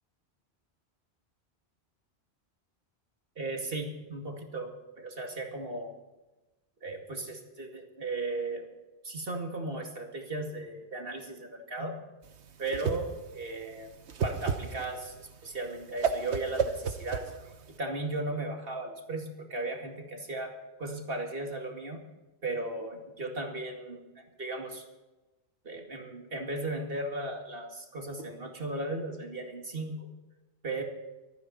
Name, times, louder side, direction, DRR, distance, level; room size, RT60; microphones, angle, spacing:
voice 1, 3.4-5.9 6.8-8.7 9.0-12.0 12.6-13.9 14.2-17.3 17.8-22.0 22.4-24.9 25.6-30.1 30.6-30.8, right 2 dB, 60° right, 2 dB, 2.4 m, -36 dB
Whoosh swoosh swish, 12.3-17.8, right 6 dB, 90° right, 1.3 m, -33 dB
25.0 x 9.4 x 4.2 m, 1.1 s
omnidirectional pair, 1.1 m